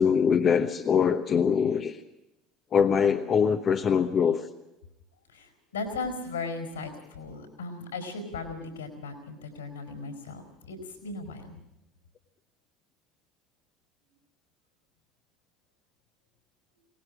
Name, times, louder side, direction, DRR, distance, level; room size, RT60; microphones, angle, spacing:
voice 1, 0.0-2.0 2.7-4.4, left 7 dB, 35° left, 5 dB, 1.0 m, -23 dB
voice 2, 5.3-11.6, left 3 dB, 75° left, 6 dB, 4.7 m, -37 dB
23.0 x 19.5 x 6.5 m, 0.91 s
figure-of-eight pair, 65°, 0 cm